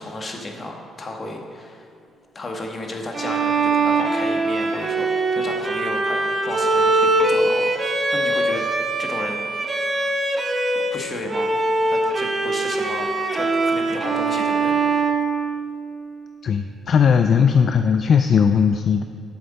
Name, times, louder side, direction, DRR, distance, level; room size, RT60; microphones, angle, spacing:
voice 1, 0.0-1.9 2.3-8.6 9.0-9.4 10.9-11.6 11.9-14.8, left 2 dB, 35° left, 2 dB, 1.5 m, -33 dB
Bowed string instrument, 3.1-11.0 11.3-16.1, right 2 dB, 35° right, 1.0 m, -22 dB
voice 2, 16.4-19.0, left 7 dB, 55° left, 8 dB, 0.4 m, -18 dB
10.0 x 7.8 x 4.2 m, 2.5 s
cardioid pair, 90°, 0 cm